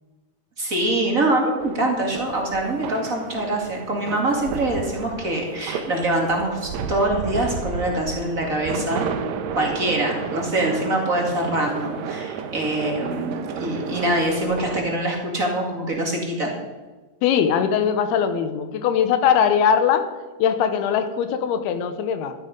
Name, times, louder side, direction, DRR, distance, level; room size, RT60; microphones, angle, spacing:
voice 1, 0.6-9.1 9.5-16.5, right 1 dB, 30° right, 0 dB, 1.8 m, -24 dB
sound 1, 1.6-14.8, right 6 dB, 75° right, 1.7 m, -32 dB
voice 2, 17.2-20.0 20.4-22.3, left 8 dB, 85° left, 9 dB, 2.9 m, -20 dB
12.5 x 11.0 x 5.2 m, 1.2 s
omnidirectional pair, 4.5 m